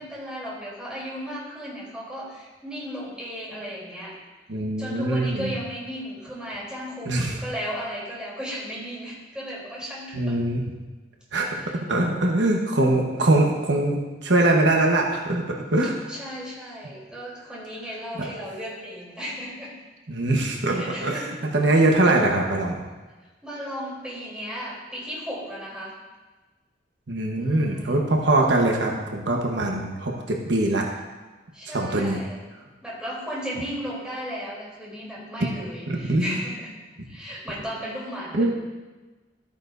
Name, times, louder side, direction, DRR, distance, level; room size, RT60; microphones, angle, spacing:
voice 1, 0.0-4.1 4.8-10.4 11.6-11.7 15.8-19.7 20.7-21.4 23.4-25.9 27.3-28.0 31.5-32.5 32.8-36.7 37.1-38.5, equal, 5° right, -7 dB, 3.4 m, -35 dB
voice 2, 4.5-5.5 7.0-7.3 10.1-10.6 11.3-11.5 11.7-15.9 18.2-18.3 20.1-21.3 21.5-22.8 27.1-30.8 31.7-32.2 35.9-36.4 38.3-38.5, right 2 dB, 80° right, 0 dB, 1.2 m, -22 dB
13.5 x 8.9 x 2.6 m, 1.2 s
head